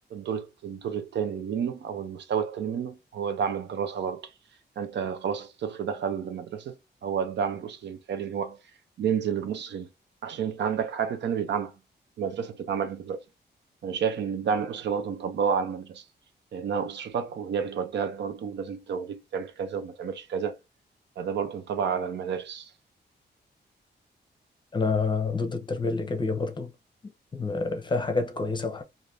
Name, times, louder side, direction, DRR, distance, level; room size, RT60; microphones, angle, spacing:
voice 1, 0.1-4.3 4.8-6.8 7.0-8.6 9.0-9.9 10.2-11.8 12.2-13.2 13.8-16.0 16.5-20.6 21.2-22.7, right 7 dB, 80° right, 0.6 m, -30 dB
voice 2, 24.7-26.7 27.3-28.8, left 4 dB, 25° left, 0.6 m, -28 dB
3.3 x 2.5 x 2.6 m
wide cardioid pair, 125°, 18 cm